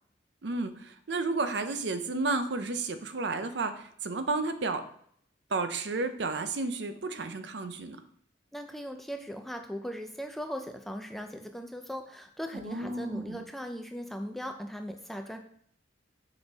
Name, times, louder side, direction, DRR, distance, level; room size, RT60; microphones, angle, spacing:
voice 1, 0.4-4.8 5.5-8.0 12.5-13.4, right 3 dB, 65° right, 9 dB, 0.6 m, -32 dB
voice 2, 8.5-15.4, equal, ahead, 5 dB, 0.4 m, -39 dB
6.5 x 5.1 x 3.5 m, 0.66 s
head